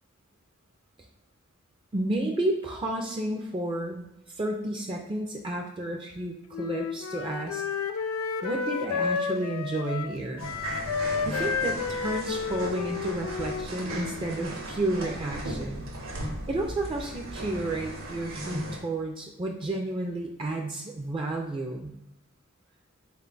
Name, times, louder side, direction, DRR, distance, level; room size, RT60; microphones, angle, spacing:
voice 1, 1.9-4.1 4.4-7.6 8.4-10.5 11.2-15.8 16.5-21.9, right 1 dB, 25° right, 1 dB, 0.4 m, -31 dB
Wind instrument woodwind instrument, 6.5-14.3, left 5 dB, 70° left, 0.3 m, -31 dB
sound 1, 10.4-18.8, right 1 dB, 65° right, 0.8 m, -37 dB
3.5 x 2.3 x 3.8 m, 0.86 s
head